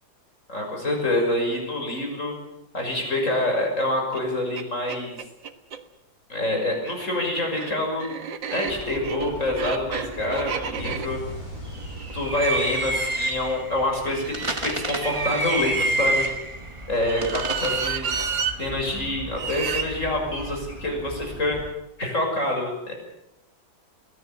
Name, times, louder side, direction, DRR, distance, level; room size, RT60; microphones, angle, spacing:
voice 1, 0.5-2.3 2.7-5.2 6.3-8.1 8.5-11.2 12.1-16.2 16.9-18.1 18.6-21.6 22.0-22.9, left 1 dB, 40° left, 2 dB, 6.5 m, -26 dB
sound 1, 4.1-4.2 4.6-4.7 4.9-5.8 6.7-12.9 14.1-16.3 17.0-18.6 19.3-19.9, right 7 dB, 70° right, 2.2 m, -32 dB
sound 2, 8.7-21.7, right 2 dB, 15° right, 1.8 m, -31 dB
sound 3, 10.7-13.8, equal, 90° left, 5.2 m, -40 dB
24.0 x 17.5 x 8.4 m, 0.90 s
omnidirectional pair, 2.1 m